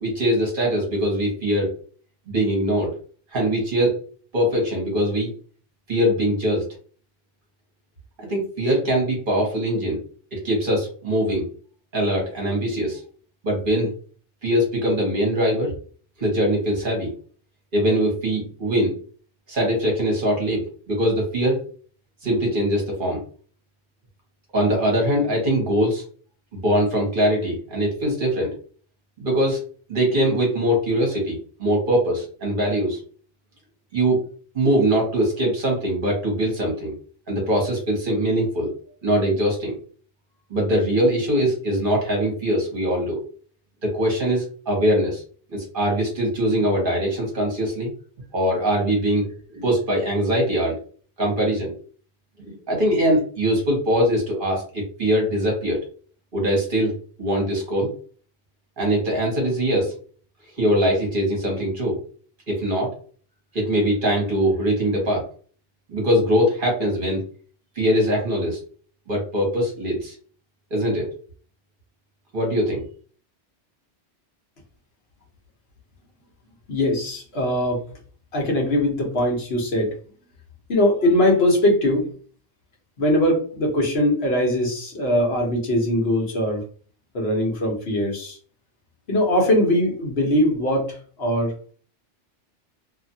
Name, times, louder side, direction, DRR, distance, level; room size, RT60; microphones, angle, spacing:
voice 1, 0.0-1.7 2.3-2.9 3.3-3.9 4.3-5.3 5.9-6.6 8.2-10.0 10.3-11.5 11.9-13.0 13.4-13.9 14.4-15.7 16.2-17.1 17.7-18.9 19.5-21.6 22.2-23.2 24.5-26.0 26.5-28.5 29.2-29.6 29.9-33.0 33.9-34.2 34.5-36.9 37.3-38.7 39.0-39.8 40.5-43.2 43.8-45.2 45.5-47.9 48.3-49.3 49.5-50.8 51.2-51.7 52.4-55.8 56.3-57.9 58.8-59.9 60.6-62.0 62.5-62.9 63.5-65.2 65.9-67.2 67.8-68.6 69.1-70.1 70.7-71.1 72.3-72.8, equal, 50° right, -1 dB, 1.2 m, -22 dB
voice 2, 76.7-77.8 78.3-79.9 80.7-82.0 83.0-86.6 87.1-88.4 89.1-91.5, left 1 dB, 65° left, 0 dB, 1.1 m, -21 dB
2.7 x 2.4 x 2.7 m, 0.43 s
omnidirectional pair, 1.2 m